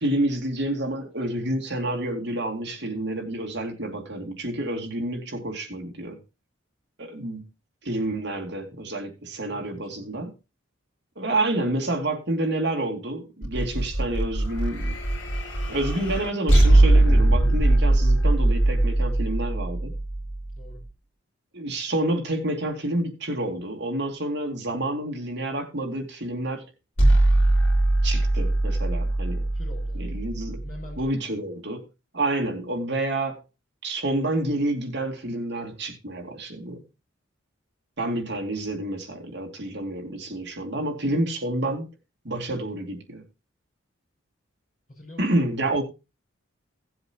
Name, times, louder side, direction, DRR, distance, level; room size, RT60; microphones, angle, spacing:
voice 1, 0.0-6.2 7.0-7.5 7.8-10.3 11.2-15.0 15.7-19.9 21.5-26.6 28.0-29.4 30.0-30.6 31.0-31.8 32.1-33.4 33.8-36.8 38.0-41.9 42.2-43.2 45.2-45.8, right 1 dB, 55° right, 2.6 m, -29 dB
voice 2, 9.5-10.2 20.6-20.8 29.5-30.1 30.5-31.3 44.9-45.2, left 2 dB, 40° left, 6.5 m, -45 dB
sound 1, 13.4-20.7 27.0-31.1, right 1 dB, 60° left, 3.1 m, -21 dB
17.5 x 7.7 x 2.9 m
head